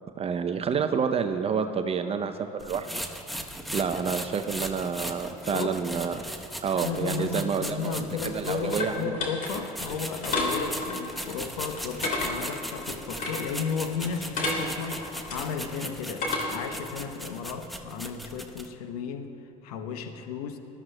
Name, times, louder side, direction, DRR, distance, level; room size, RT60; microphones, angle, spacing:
voice 1, 0.2-3.0 3.7-6.3 6.6-9.1, right 6 dB, 30° right, 8 dB, 0.6 m, -29 dB
sound 1, 2.6-9.0 9.4-18.7, equal, ahead, 0.9 m, -38 dB
voice 2, 6.7-19.3 19.6-20.6, left 6 dB, 80° left, 6 dB, 0.9 m, -34 dB
sound 2, 8.0-16.8, left 2 dB, 45° left, 2.7 m, -33 dB
20.0 x 13.0 x 2.2 m, 2.8 s
hypercardioid pair, 75°, 19 cm